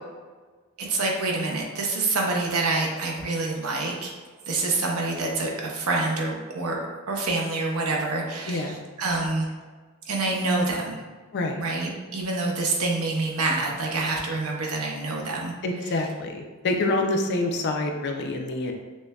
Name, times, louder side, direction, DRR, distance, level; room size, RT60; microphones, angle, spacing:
voice 1, 0.8-4.1 4.4-6.8 7.1-8.7 9.0-9.5 10.1-11.0 11.6-15.5, right 3 dB, 75° right, -1 dB, 0.8 m, -26 dB
voice 2, 8.5-8.8 11.3-11.6 15.6-18.7, left 2 dB, 50° left, 3 dB, 0.4 m, -27 dB
6.2 x 2.2 x 2.3 m, 1.4 s
head